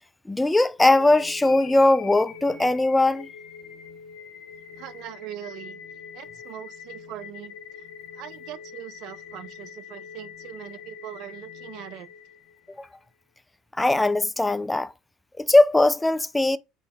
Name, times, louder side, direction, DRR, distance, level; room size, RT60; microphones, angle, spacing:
voice 1, 0.3-3.3 12.8-12.9 13.8-14.9 15.4-16.6, left 2 dB, 10° left, 0.3 m, -20 dB
sound 1, 0.8-12.8, left 6 dB, 75° left, 0.9 m, -43 dB
voice 2, 4.8-5.8 6.1-7.5 8.1-12.1, right 13 dB, 70° right, 0.4 m, -41 dB
3.4 x 2.9 x 4.2 m
supercardioid pair, 90°, 0 cm